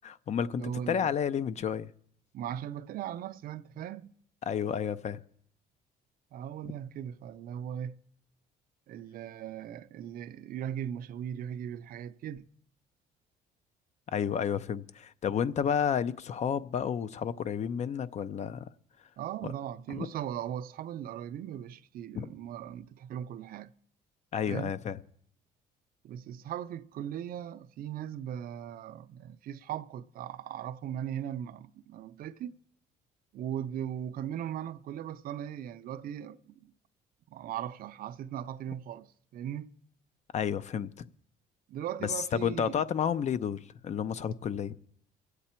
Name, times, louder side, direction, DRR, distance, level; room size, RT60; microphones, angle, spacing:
voice 1, 0.0-1.9 4.5-5.2 14.1-18.7 19.9-20.1 22.2-22.3 24.3-25.0 40.3-41.1 42.0-44.8, left 8 dB, 40° left, 0.6 m, -31 dB
voice 2, 0.6-1.1 2.3-4.1 6.3-8.0 8.9-12.4 19.2-23.7 24.4-24.7 26.0-32.6 33.3-36.7 37.3-39.7 41.7-42.8, right 10 dB, 60° right, 0.5 m, -38 dB
24.5 x 8.2 x 4.4 m
cardioid pair, 110°, 17 cm